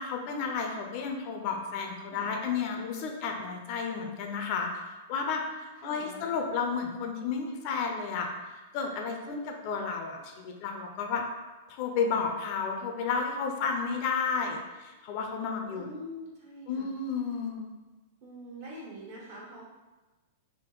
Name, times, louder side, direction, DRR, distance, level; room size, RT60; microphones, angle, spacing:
voice 1, 0.0-8.3 8.7-11.2 11.7-15.9 16.7-17.7, left 5 dB, 50° left, 3 dB, 0.5 m, -32 dB
voice 2, 5.8-6.3 15.7-16.9 18.2-19.6, equal, 60° right, -5 dB, 1.4 m, -44 dB
3.6 x 2.0 x 3.9 m, 1.2 s
hypercardioid pair, 125°, 0 cm